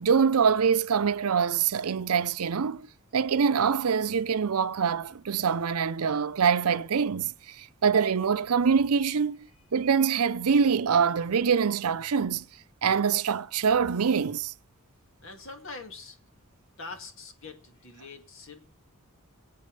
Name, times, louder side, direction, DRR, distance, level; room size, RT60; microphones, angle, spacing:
voice 1, 0.0-2.9 3.1-9.5 9.7-12.4 12.8-14.5, right 6 dB, 90° right, 0.6 m, -24 dB
voice 2, 15.2-16.2 16.8-18.7, left 3 dB, 60° left, 2.2 m, -44 dB
24.0 x 8.5 x 3.3 m
head